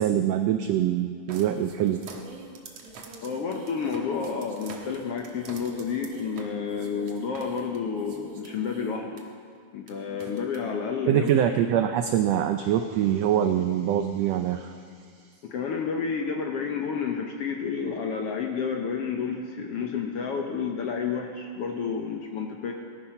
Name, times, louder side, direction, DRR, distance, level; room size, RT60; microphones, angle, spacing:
voice 1, 0.0-2.2 11.1-14.7, right 10 dB, 85° right, 7 dB, 1.5 m, -24 dB
sound 1, 1.3-9.2 9.9-10.0 10.2-10.6 11.3-11.4, right 3 dB, 60° right, 2.3 m, -44 dB
voice 2, 3.2-9.2 9.7-11.5 15.4-22.7, left 6 dB, 65° left, 2 dB, 1.5 m, -30 dB
18.5 x 11.0 x 5.8 m, 2.1 s
omnidirectional pair, 3.6 m